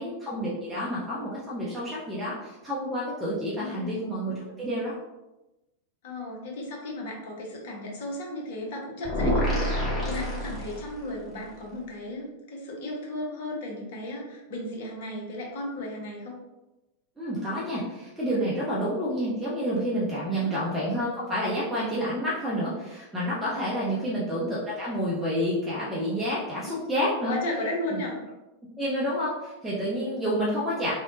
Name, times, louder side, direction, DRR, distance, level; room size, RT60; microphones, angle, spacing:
voice 1, 0.0-4.9 17.2-27.3 27.9-28.0 28.8-30.9, equal, 10° right, -8 dB, 0.6 m, -29 dB
voice 2, 3.5-4.1 6.0-16.4 20.3-20.6 23.8-24.1 26.6-26.8 27.3-28.2, left 1 dB, 55° left, 0 dB, 0.7 m, -35 dB
sound 1, 9.0-11.2, equal, 10° left, 1.0 m, -27 dB
2.8 x 2.1 x 2.5 m, 1.0 s
figure-of-eight pair, 90°, 0 cm